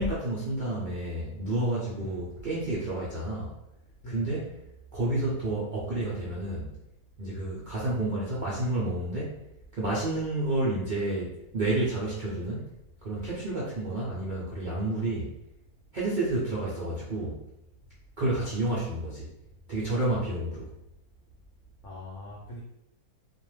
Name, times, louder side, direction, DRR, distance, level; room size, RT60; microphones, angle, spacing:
voice 1, 0.0-3.5 4.1-4.5 4.9-6.7 7.2-9.4 9.7-12.7 13.0-15.3 15.9-17.4 18.2-19.3 19.7-20.7, right 1 dB, 80° right, -8 dB, 0.4 m, -30 dB
voice 2, 21.8-22.6, left 1 dB, 65° left, -6 dB, 0.9 m, -42 dB
2.5 x 2.2 x 3.1 m, 0.84 s
omnidirectional pair, 1.7 m